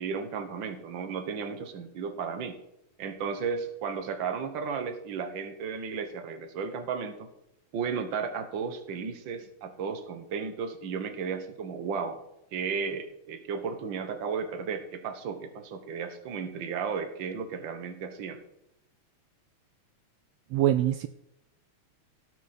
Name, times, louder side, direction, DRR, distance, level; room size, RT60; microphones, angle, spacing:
voice 1, 0.0-2.6 3.0-7.3 7.7-12.2 12.5-18.4, right 6 dB, 50° right, 8 dB, 1.5 m, -34 dB
voice 2, 20.5-21.1, right 13 dB, 80° right, 11 dB, 1.4 m, -24 dB
17.5 x 7.0 x 4.3 m, 0.84 s
omnidirectional pair, 3.4 m